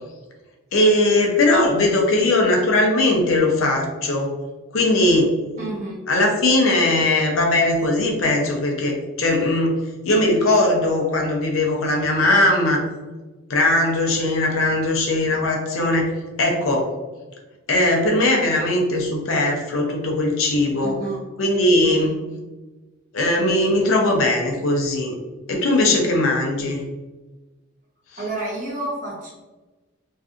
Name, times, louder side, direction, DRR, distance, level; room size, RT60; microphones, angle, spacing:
voice 1, 0.7-4.3 4.7-5.3 6.1-12.8 13.5-16.1 16.4-16.9 17.7-21.0 21.4-22.2 23.1-25.1 25.5-26.8, left 1 dB, 85° left, 1 dB, 0.6 m, -19 dB
voice 2, 5.6-6.1 20.8-21.3 21.8-22.1 28.2-29.3, right 2 dB, 40° right, -4 dB, 0.7 m, -30 dB
2.6 x 2.3 x 2.4 m, 1.2 s
head